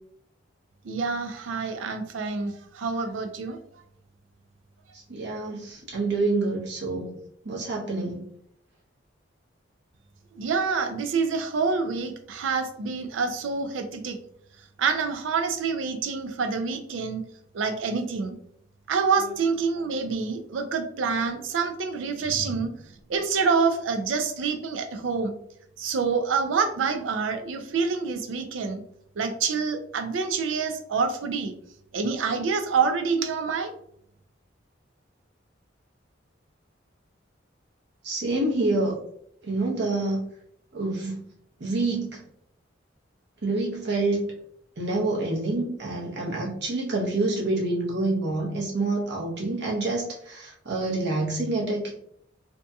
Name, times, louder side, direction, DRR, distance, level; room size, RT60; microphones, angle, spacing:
voice 1, 0.8-3.6 10.4-14.2 14.8-17.2 17.5-18.4 18.9-22.7 23.1-25.3 25.8-28.8 29.2-31.5 31.9-33.7, right 5 dB, 85° right, 6 dB, 0.4 m, -27 dB
voice 2, 5.1-7.1 7.4-8.2 38.0-39.0 39.4-40.2 40.7-41.2 41.6-42.1 43.4-44.3 44.8-51.9, right 2 dB, 65° right, -3 dB, 0.8 m, -27 dB
2.6 x 2.6 x 2.2 m, 0.69 s
head